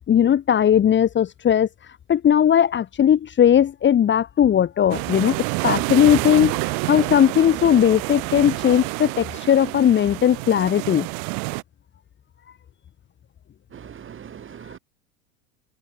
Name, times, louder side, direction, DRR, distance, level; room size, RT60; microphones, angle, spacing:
voice 1, 0.1-1.7 2.1-11.1, left 9 dB, 25° left, 1.5 m, -18 dB
sound 1, 4.9-11.6, right 40 dB or more, 60° right, 6.7 m, -28 dB
voice 2, 13.7-14.8, right 8 dB, 30° right, 4.4 m, -40 dB
hypercardioid pair, 105°, 41 cm